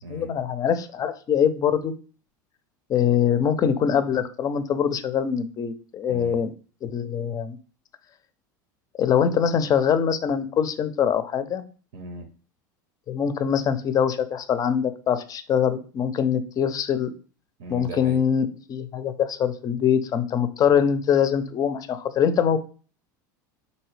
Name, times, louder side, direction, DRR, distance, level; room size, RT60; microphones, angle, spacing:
voice 1, 0.1-1.9 2.9-6.5 6.8-7.6 9.0-11.6 13.1-17.1 17.7-22.6, left 8 dB, 35° left, 11 dB, 0.5 m, -23 dB
voice 2, 6.1-6.4 11.9-12.3 17.6-18.2, right 2 dB, 70° right, 5 dB, 0.7 m, -38 dB
3.8 x 2.7 x 3.1 m, 0.38 s
hypercardioid pair, 100°, 10 cm